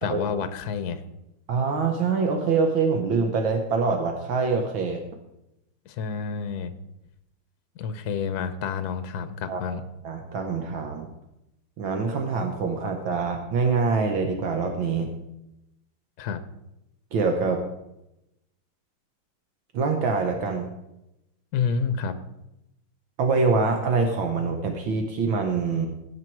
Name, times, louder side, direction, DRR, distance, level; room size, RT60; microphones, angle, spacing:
voice 1, 0.0-1.0 5.9-6.7 7.8-9.8 16.2-16.4 21.5-22.2, left 6 dB, 60° left, 11 dB, 1.1 m, -29 dB
voice 2, 1.5-5.0 9.5-9.8 10.0-11.1 11.8-15.1 17.1-17.6 19.7-20.7 23.2-25.9, right 4 dB, 70° right, 4 dB, 1.7 m, -25 dB
16.5 x 6.2 x 4.6 m, 0.88 s
omnidirectional pair, 2.4 m